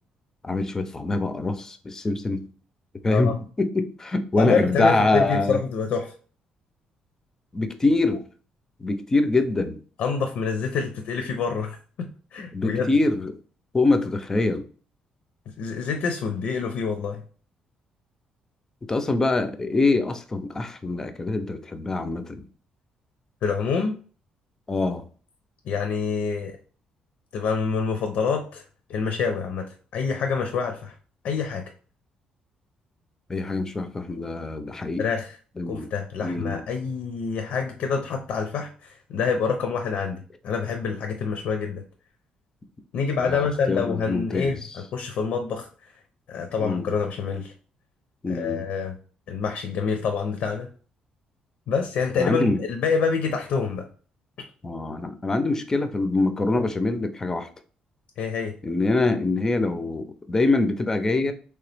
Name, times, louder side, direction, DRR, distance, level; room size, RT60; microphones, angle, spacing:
voice 1, 0.4-2.4 3.0-5.6 7.5-8.2 8.8-9.8 12.5-13.3 13.7-14.6 18.9-22.4 24.7-25.1 33.3-35.0 35.6-35.9 36.2-36.6 43.2-44.6 46.6-47.0 48.2-48.6 52.2-52.6 54.6-57.5 58.6-61.3, left 2 dB, 20° left, 9 dB, 0.5 m, -24 dB
voice 2, 4.4-6.1 10.0-12.9 15.6-17.2 23.4-23.9 25.7-26.6 27.3-28.6 28.9-30.9 31.2-31.6 35.0-35.3 35.7-41.8 42.9-45.7 46.3-47.5 48.3-49.0 49.3-50.7 51.7-53.9 58.2-58.5, left 5 dB, 70° left, 5 dB, 0.6 m, -27 dB
3.3 x 2.9 x 3.3 m, 0.41 s
cardioid pair, 125°, 3 cm